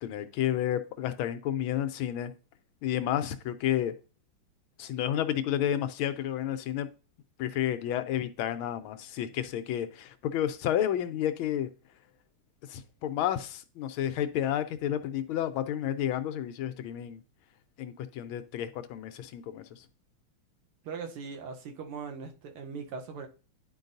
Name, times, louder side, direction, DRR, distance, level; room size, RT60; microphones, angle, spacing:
voice 1, 0.0-2.3 2.8-3.9 4.8-6.9 7.4-11.7 12.7-17.2 17.8-19.8, left 11 dB, 80° left, 1.4 m, -31 dB
voice 2, 20.8-23.3, right 5 dB, 85° right, 1.9 m, -40 dB
10.5 x 4.6 x 2.6 m
omnidirectional pair, 2.3 m